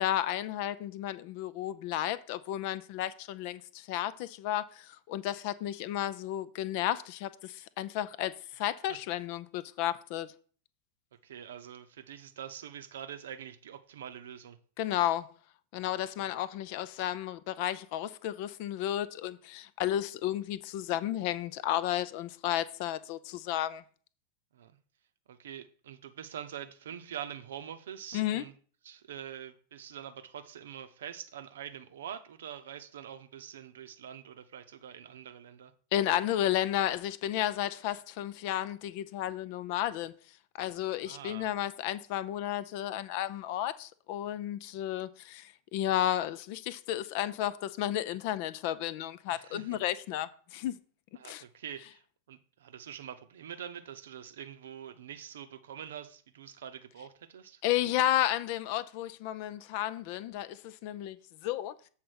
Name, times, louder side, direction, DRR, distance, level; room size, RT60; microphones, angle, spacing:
voice 1, 0.0-10.3 14.8-15.3 15.7-23.8 28.1-28.4 35.9-40.1 40.6-50.8 51.2-51.4 57.6-61.2 61.4-61.7, left 12 dB, 45° left, 0.5 m, -32 dB
voice 2, 11.2-14.6 16.2-16.3 24.5-24.7 25.3-28.5 28.8-35.7 40.7-41.5 49.3-49.8 51.1-57.6, right 9 dB, 60° right, 0.7 m, -45 dB
7.5 x 4.0 x 6.2 m
figure-of-eight pair, 90°, 0 cm